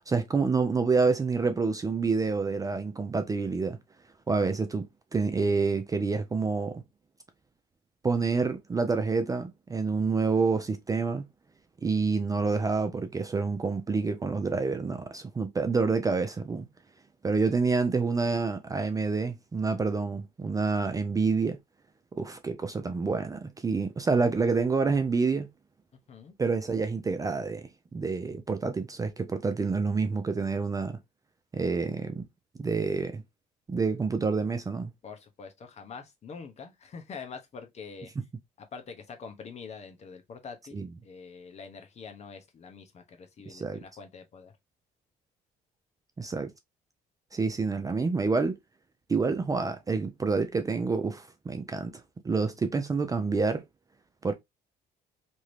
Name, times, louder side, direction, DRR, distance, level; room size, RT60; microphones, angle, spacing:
voice 1, 0.0-3.8 4.3-6.8 8.0-11.3 11.8-16.7 17.2-21.6 22.1-25.5 26.4-31.0 31.5-32.2 32.6-33.2 33.7-34.9 40.7-40.9 43.5-43.8 46.2-46.5 47.3-48.6 49.1-51.9 52.2-53.6 54.2-54.3, right 4 dB, 20° right, 0.4 m, -28 dB
voice 2, 35.0-38.1 38.6-44.5, left 5 dB, 40° left, 0.8 m, -45 dB
2.8 x 2.6 x 3.1 m
cardioid pair, 110°, 17 cm